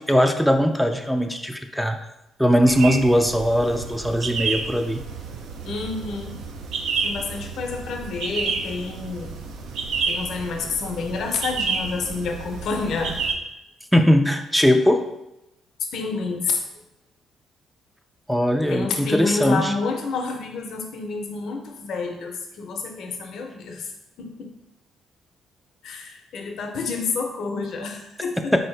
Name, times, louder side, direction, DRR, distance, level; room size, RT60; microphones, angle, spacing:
voice 1, 0.0-2.0 2.4-5.0 13.9-15.0 18.3-19.7, equal, ahead, 6 dB, 0.3 m, -20 dB
sound 1, 2.7-13.3, right 4 dB, 80° right, 0.4 m, -30 dB
voice 2, 5.6-6.4 7.0-9.3 10.1-13.1 15.8-16.6 18.7-23.9 24.2-24.5 25.8-28.6, left 4 dB, 70° left, 3 dB, 0.6 m, -29 dB
3.9 x 2.7 x 3.2 m, 0.88 s
cardioid pair, 90°, 0 cm